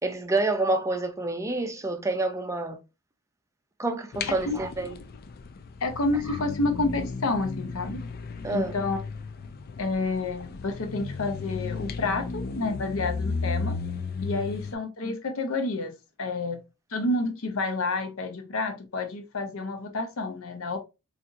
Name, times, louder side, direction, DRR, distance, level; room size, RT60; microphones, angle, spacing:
voice 1, 0.0-2.8 3.8-4.9 8.4-8.7, right 2 dB, 15° right, 0.5 m, -28 dB
sound 1, 4.1-14.7, left 4 dB, 45° left, 0.4 m, -35 dB
voice 2, 5.8-8.1 8.5-9.0 9.8-13.8 14.2-15.9 16.2-16.6 16.9-20.8, left 2 dB, 65° left, 0.7 m, -29 dB
4.1 x 2.5 x 2.5 m
head